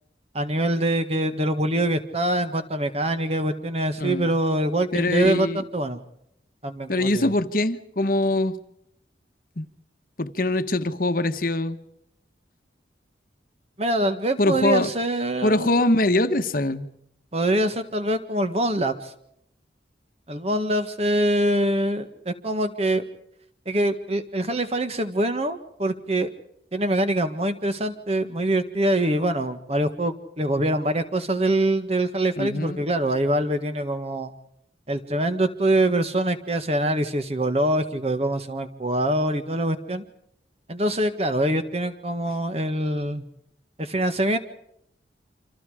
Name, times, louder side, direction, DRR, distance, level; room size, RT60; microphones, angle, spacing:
voice 1, 0.3-6.0 6.6-7.3 13.8-15.9 17.3-19.1 20.3-23.0 23.6-26.3 26.7-34.3 34.9-40.0 40.7-43.3 43.8-44.4, right 1 dB, 35° right, 9 dB, 1.6 m, -24 dB
voice 2, 4.0-4.3 4.9-5.6 6.9-8.6 9.6-9.7 10.2-11.8 14.4-14.9 15.4-16.9 32.4-32.8, left 2 dB, 50° left, 9 dB, 1.3 m, -23 dB
28.5 x 26.5 x 5.0 m, 0.75 s
head